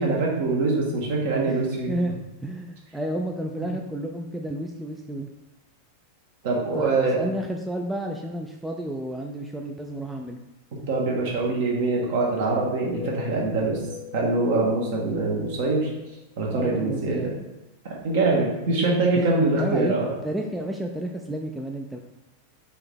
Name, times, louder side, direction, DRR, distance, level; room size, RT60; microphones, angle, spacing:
voice 1, 0.0-1.9 6.4-7.2 10.7-13.8 14.1-15.9 16.4-17.3 18.0-20.1, right 3 dB, 55° right, -2 dB, 1.2 m, -24 dB
voice 2, 2.4-5.3 6.8-10.4 16.5-17.4 18.7-19.2 19.6-20.0 20.2-22.0, right 1 dB, 5° right, 1 dB, 0.3 m, -31 dB
sound 1, 12.5-17.1, left 10 dB, 50° left, 0.5 m, -40 dB
4.6 x 2.8 x 3.5 m, 1.0 s
figure-of-eight pair, 90°, 0 cm